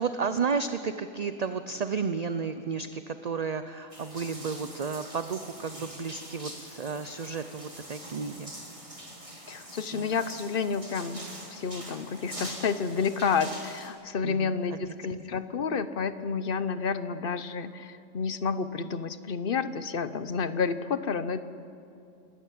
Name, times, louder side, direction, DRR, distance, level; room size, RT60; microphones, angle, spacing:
voice 1, 0.0-8.5 9.9-10.1 14.2-14.8, right 5 dB, 40° right, 10 dB, 0.6 m, -32 dB
sound 1, 3.9-13.9, right 1 dB, 25° right, 3.2 m, -44 dB
voice 2, 9.5-11.2 11.5-21.4, left 5 dB, 50° left, 13 dB, 0.9 m, -30 dB
26.5 x 14.0 x 8.7 m, 2.6 s
omnidirectional pair, 1.3 m